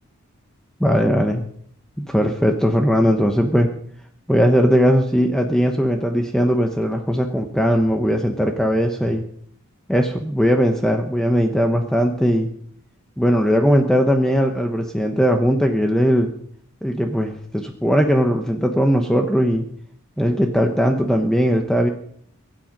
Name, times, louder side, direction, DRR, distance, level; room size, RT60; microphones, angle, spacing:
voice 1, 0.8-1.4 2.0-3.7 4.3-9.2 9.9-12.5 13.2-16.3 16.8-19.7 20.2-21.9, equal, 5° left, 3 dB, 1.0 m, -19 dB
23.5 x 9.0 x 5.3 m, 0.64 s
head